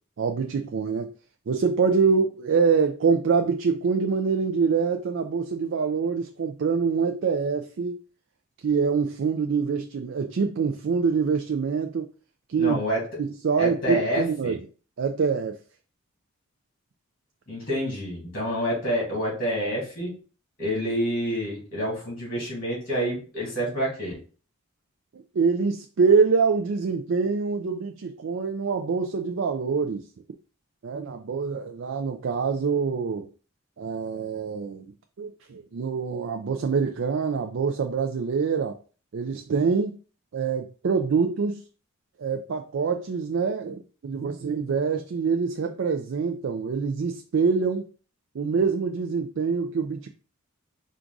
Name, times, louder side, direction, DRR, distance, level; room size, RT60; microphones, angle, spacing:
voice 1, 0.2-1.1 1.5-8.0 8.6-12.1 12.5-12.8 13.2-14.6 15.0-15.6 25.1-30.0 30.8-33.3 33.8-34.9 35.2-38.8 39.1-39.9 40.3-41.6 42.2-47.9 48.3-50.1, right 5 dB, 65° right, 0.4 m, -25 dB
voice 2, 12.6-13.0 13.6-14.6 17.5-20.2 20.6-24.2, equal, 45° left, 2.4 m, -28 dB
4.6 x 2.5 x 3.8 m
head